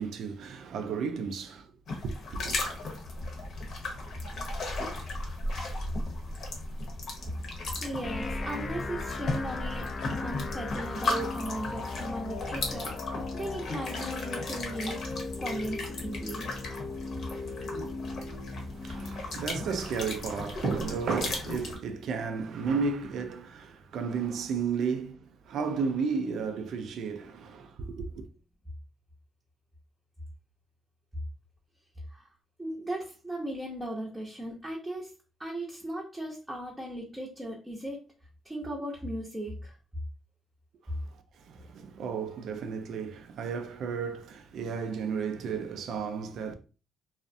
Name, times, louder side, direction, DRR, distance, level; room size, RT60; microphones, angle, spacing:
voice 1, 0.0-1.7 2.0-2.6 18.1-28.3 40.9-46.5, right 5 dB, 70° right, 0.4 m, -33 dB
sound 1, 1.9-21.8, left 2 dB, 65° left, 0.8 m, -36 dB
voice 2, 7.8-9.9 10.2-16.5 32.1-32.3 32.6-35.1 35.4-38.0 38.4-39.7, right 1 dB, 10° right, 0.6 m, -37 dB
sound 2, 8.0-22.0, left 3 dB, 35° left, 0.4 m, -38 dB
2.4 x 2.0 x 2.5 m
cardioid pair, 90°, 0 cm